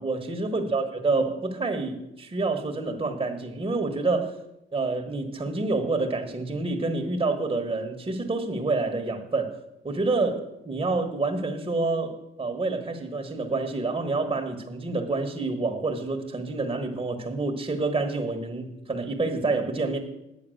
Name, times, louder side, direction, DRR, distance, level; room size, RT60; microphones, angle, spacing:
voice 1, 0.0-4.4 4.7-9.6 9.8-20.0, right 3 dB, 25° right, 3 dB, 1.3 m, -28 dB
9.2 x 6.9 x 6.4 m, 0.89 s
cardioid pair, 90°, 20 cm